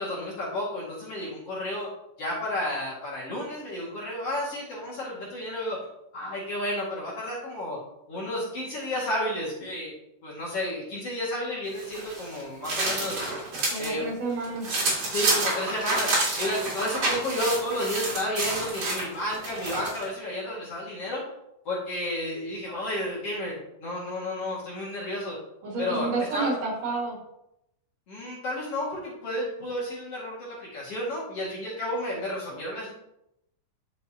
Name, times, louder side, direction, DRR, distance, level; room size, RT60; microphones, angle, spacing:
voice 1, 0.0-1.9 2.2-5.9 6.1-7.8 8.1-9.9 10.2-13.2 13.8-14.1 14.5-14.6 15.1-21.2 21.6-25.4 25.8-26.6 28.1-32.9, left 1 dB, 45° left, -5 dB, 2.7 m, -32 dB
sound 1, 11.8-13.9 14.3-20.1, right 2 dB, 45° right, 3.7 m, -29 dB
voice 2, 13.7-14.7 25.6-27.2, right 3 dB, 65° right, -2 dB, 3.5 m, -30 dB
11.0 x 6.6 x 2.9 m, 0.83 s
omnidirectional pair, 4.1 m